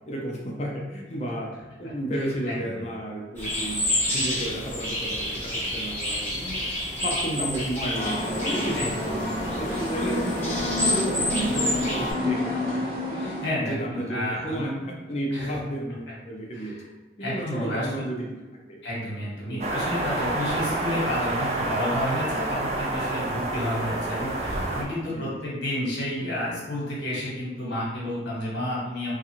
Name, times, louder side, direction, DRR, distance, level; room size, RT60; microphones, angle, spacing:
voice 1, 0.1-6.7 7.0-9.0 9.4-12.5 13.6-16.8 17.2-18.3 18.7-18.8 19.4-19.7 25.0-25.4, right 1 dB, 35° left, -2 dB, 0.5 m, -32 dB
voice 2, 2.5-2.8 8.7-8.9 13.1-14.6 15.3-15.5 16.5-16.8 17.2-18.0 18.8-29.1, left 1 dB, 85° left, -6 dB, 1.1 m, -31 dB
sound 1, 3.4-12.1, left 1 dB, 10° left, 0.9 m, -29 dB
sound 2, 7.9-13.5, left 1 dB, 55° right, 1.0 m, -28 dB
sound 3, 19.6-24.8, right 2 dB, 35° right, 0.3 m, -28 dB
2.5 x 2.3 x 2.8 m, 1.2 s
head